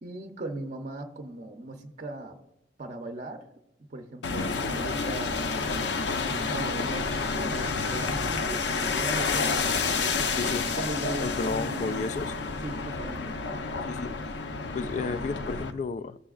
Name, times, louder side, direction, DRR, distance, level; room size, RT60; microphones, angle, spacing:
voice 1, 0.0-2.4 2.8-3.5 3.8-5.5 6.3-12.1 12.6-13.3, right 1 dB, 45° right, 0.6 m, -38 dB
sound 1, 4.2-15.7, left 4 dB, 80° left, 0.7 m, -29 dB
voice 2, 11.2-12.3 13.8-14.1 14.7-16.2, left 4 dB, 45° left, 0.3 m, -32 dB
14.0 x 6.8 x 2.4 m
head